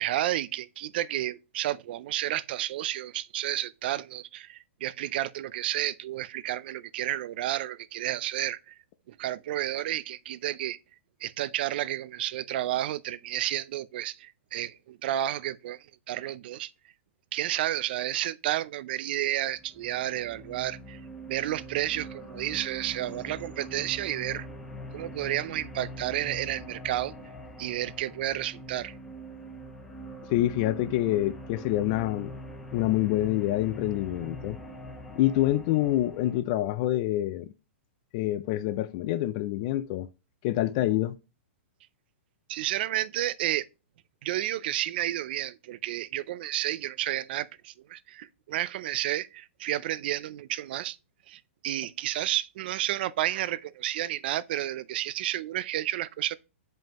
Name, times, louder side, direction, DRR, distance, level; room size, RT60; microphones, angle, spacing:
voice 1, 0.0-8.7 9.1-10.8 11.2-16.7 17.3-21.0 21.3-24.5 24.9-27.1 27.6-28.9 42.5-43.7 44.2-51.0 51.3-56.3, right 13 dB, 50° right, 0.4 m, -31 dB
sound 1, 19.4-36.4, equal, 10° left, 1.1 m, -43 dB
voice 2, 30.3-32.4 32.7-34.6 35.2-37.5 38.1-40.1 40.4-41.2, left 14 dB, 35° left, 0.3 m, -26 dB
7.3 x 5.3 x 2.9 m
hypercardioid pair, 155°, 7 cm